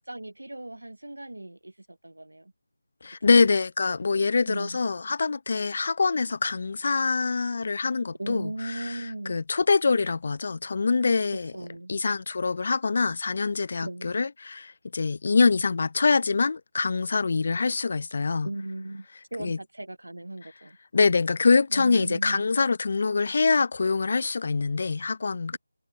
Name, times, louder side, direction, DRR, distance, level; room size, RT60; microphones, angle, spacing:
voice 1, 0.0-2.5 3.3-3.4 4.4-4.8 8.2-9.4 11.5-12.0 13.8-14.1 18.4-20.8 21.7-22.5, right 1 dB, 90° right, 0.7 m, -37 dB
voice 2, 3.0-11.5 11.9-18.5 19.4-19.6 20.9-25.6, left 4 dB, 45° left, 0.4 m, -24 dB
figure-of-eight pair, 165°, 0 cm